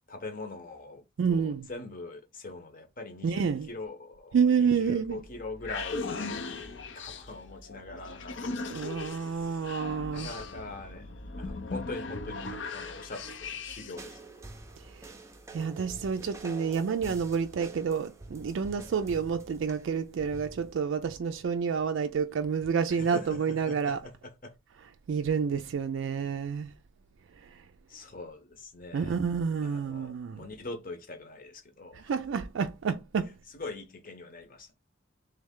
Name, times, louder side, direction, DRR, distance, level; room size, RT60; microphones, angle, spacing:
voice 1, 0.1-6.4 6.9-9.8 10.1-11.1 11.4-14.2 22.9-24.6 27.9-29.2 29.6-32.1 33.3-34.7, left 2 dB, 40° left, 0.9 m, -43 dB
voice 2, 1.2-1.7 3.2-3.7 4.3-5.2 8.7-10.3 15.5-24.0 25.1-26.7 28.9-30.4 32.0-33.3, right 6 dB, 65° right, 0.3 m, -29 dB
sound 1, 5.0-14.1, left 3 dB, 60° left, 0.6 m, -39 dB
sound 2, 14.0-20.8, right 2 dB, 15° right, 0.5 m, -47 dB
3.4 x 3.2 x 3.6 m
head